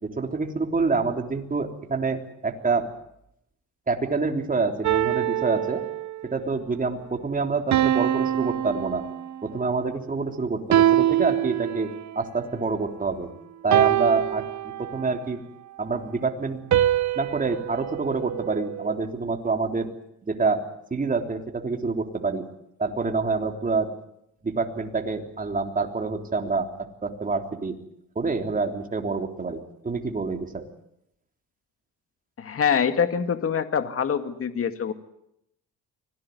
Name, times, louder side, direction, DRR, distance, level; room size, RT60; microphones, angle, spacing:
voice 1, 0.0-2.9 3.9-5.8 6.2-9.0 9.4-13.3 13.6-15.4 15.8-16.6 17.2-19.9 20.2-22.4 22.8-23.9 24.4-26.7 27.0-27.8 28.2-30.7, right 4 dB, 25° right, 4 dB, 3.6 m, -27 dB
sound 1, 4.8-6.3 7.7-9.5 10.7-12.2 13.7-15.2 16.7-19.0, right 12 dB, 55° right, 1.1 m, -24 dB
voice 2, 32.4-34.9, left 7 dB, 40° left, 9 dB, 2.2 m, -25 dB
25.0 x 18.5 x 9.5 m, 0.79 s
cardioid pair, 95°, 35 cm